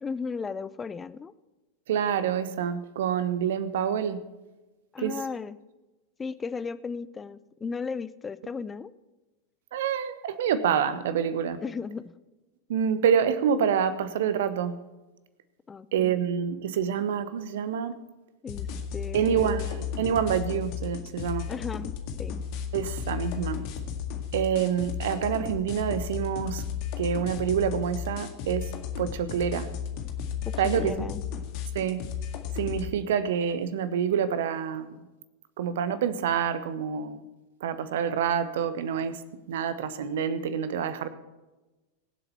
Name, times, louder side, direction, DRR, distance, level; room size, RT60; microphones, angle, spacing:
voice 1, 0.0-1.3 4.9-5.6 6.2-8.9 11.6-12.1 15.7-16.2 18.4-19.7 21.5-21.9 22.2-22.4 30.4-31.2, left 5 dB, 15° left, 15 dB, 0.6 m, -35 dB
voice 2, 1.9-4.2 5.0-5.2 9.7-11.6 12.7-14.7 15.9-18.0 19.1-21.5 22.7-23.6 24.3-26.6 27.0-28.7 29.0-29.7 30.6-31.1 31.7-32.0 32.5-35.0 35.6-37.2 37.6-39.2 39.5-41.1, right 8 dB, 55° right, 13 dB, 1.2 m, -27 dB
sound 1, 18.5-32.9, left 8 dB, 45° left, 1.8 m, -34 dB
23.5 x 7.9 x 4.5 m, 1.1 s
figure-of-eight pair, 90°, 0 cm